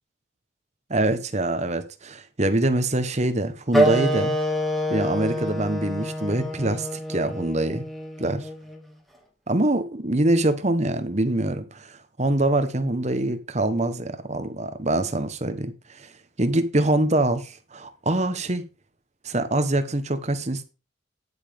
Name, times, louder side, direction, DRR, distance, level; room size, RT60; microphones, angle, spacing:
voice 1, 0.9-4.4 4.9-7.8 8.2-8.4 9.5-16.1 16.4-18.6 19.2-20.6, right 1 dB, 35° right, 1.1 m, -24 dB
Wind instrument woodwind instrument, 3.7-8.8, equal, ahead, 1.7 m, -26 dB
10.0 x 8.7 x 3.6 m
head